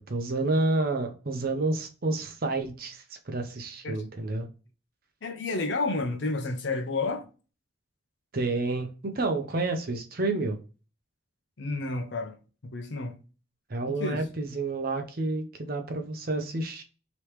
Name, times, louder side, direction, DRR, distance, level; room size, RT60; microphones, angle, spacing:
voice 1, 0.1-4.5 8.3-10.6 13.7-16.8, right 2 dB, 50° right, 0.7 m, -29 dB
voice 2, 5.2-7.3 11.6-12.4 12.6-13.2 14.0-14.2, left 3 dB, 65° left, 0.7 m, -30 dB
3.3 x 3.0 x 3.0 m
head